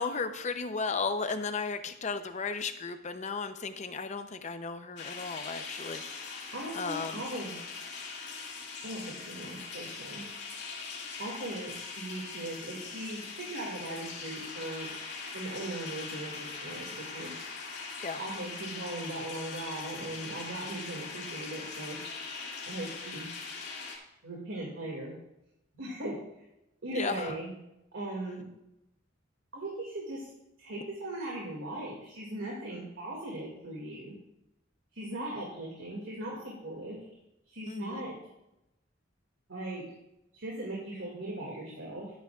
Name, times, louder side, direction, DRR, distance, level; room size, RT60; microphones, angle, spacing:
voice 1, 0.0-7.2 11.0-11.3 12.1-12.2 18.0-18.2 26.9-27.4 37.7-38.1, left 4 dB, 35° left, 9 dB, 0.7 m, -35 dB
sound 1, 5.0-24.0, left 4 dB, 60° left, 2.3 m, -41 dB
voice 2, 6.5-7.6 8.8-10.3 11.2-14.9 15.3-17.3 18.2-22.0 22.6-23.3 24.2-25.1 25.7-26.2 26.8-27.5 27.9-28.5 29.5-30.3 30.6-34.1 34.9-37.0 37.5-38.2 39.5-39.8 40.3-42.1, right 1 dB, 80° right, -4 dB, 2.3 m, -39 dB
12.5 x 9.5 x 2.4 m, 0.87 s
head